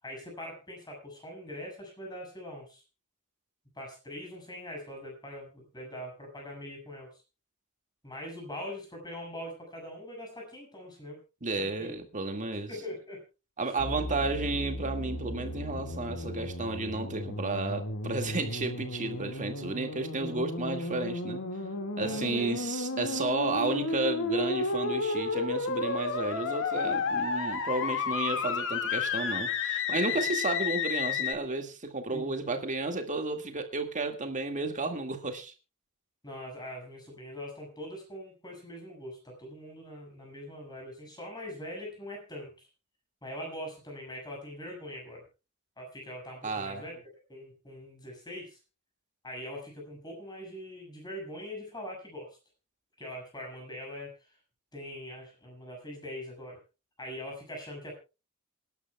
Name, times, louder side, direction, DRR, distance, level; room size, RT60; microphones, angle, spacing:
voice 1, 0.0-2.8 3.8-7.1 8.0-11.2 11.6-11.9 12.7-13.2 13.7-13.8 22.0-22.6 30.1-30.2 32.1-32.3 36.2-42.7 43.2-45.2 45.8-47.0 47.3-48.6 49.2-52.3 53.0-54.1 54.7-56.6 57.0-57.9, left 1 dB, 20° left, 6.8 m, -42 dB
voice 2, 11.4-12.7 13.6-21.4 22.0-35.5 46.4-46.9, right 3 dB, 35° right, 2.1 m, -32 dB
sound 1, 13.8-31.3, left 4 dB, 60° left, 2.0 m, -32 dB
27.0 x 11.5 x 2.3 m
head